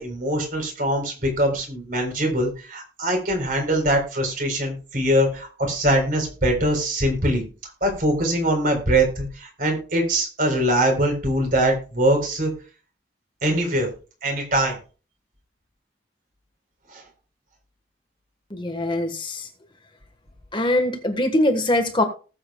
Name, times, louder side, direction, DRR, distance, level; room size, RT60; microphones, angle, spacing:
voice 1, 0.0-7.4 7.8-12.5 13.4-13.9 14.2-14.8 16.9-17.0, right 1 dB, 50° right, 3 dB, 3.9 m, -22 dB
voice 2, 18.5-19.5 20.5-22.0, left 1 dB, 25° left, 5 dB, 1.4 m, -22 dB
19.0 x 7.8 x 2.3 m, 0.35 s
head